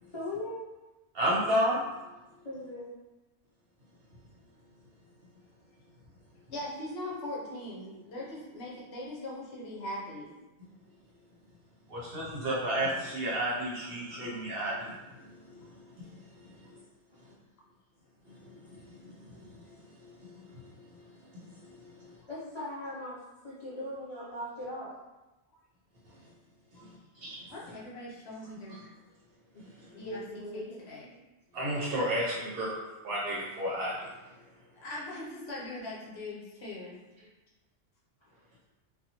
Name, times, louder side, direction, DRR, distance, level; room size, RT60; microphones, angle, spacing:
voice 1, 0.1-0.6 2.4-2.9 22.3-23.2 23.4-24.9 29.9-30.8 36.8-36.9 37.2-37.3, left 1 dB, 40° left, -9 dB, 0.4 m, -39 dB
voice 2, 1.1-1.9 11.9-16.1 16.3-16.8 18.3-22.1 26.7-27.5 28.7-28.8 29.8-30.0 31.5-32.8 33.0-34.1, equal, 55° right, -5 dB, 0.9 m, -34 dB
voice 3, 6.5-10.3 26.8-26.9 27.5-28.9 29.5-29.6 30.0-30.2 30.5-31.1 34.8-37.0, left 1 dB, 65° left, -5 dB, 0.9 m, -40 dB
2.6 x 2.3 x 2.8 m, 1.1 s
omnidirectional pair, 1.2 m